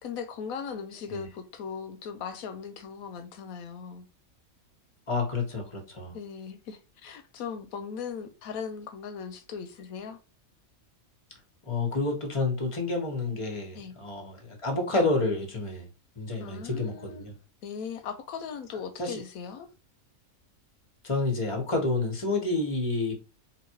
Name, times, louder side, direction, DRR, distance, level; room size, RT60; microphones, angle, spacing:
voice 1, 0.0-4.1 6.1-10.2 13.7-14.0 16.4-17.2 17.6-19.7, left 6 dB, 90° left, 1.1 m, -38 dB
voice 2, 5.1-6.1 11.7-15.8 16.2-17.3 19.0-19.2 21.0-23.1, left 3 dB, 25° left, 1.2 m, -29 dB
3.9 x 2.6 x 4.6 m
omnidirectional pair, 1.5 m